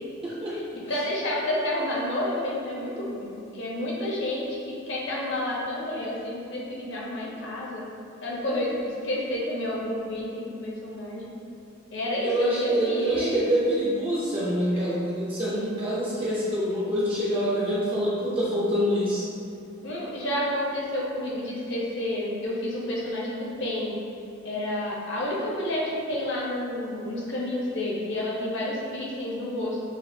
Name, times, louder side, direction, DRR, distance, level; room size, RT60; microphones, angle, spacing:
voice 1, 0.2-0.6 0.9-1.0 12.2-19.3, equal, 25° right, -8 dB, 0.5 m, -26 dB
voice 2, 0.9-7.8 8.2-11.3 11.9-13.4 14.7-14.8 19.8-23.9 24.4-29.8, left 1 dB, 60° left, -5 dB, 0.9 m, -30 dB
6.7 x 2.4 x 2.6 m, 2.7 s
head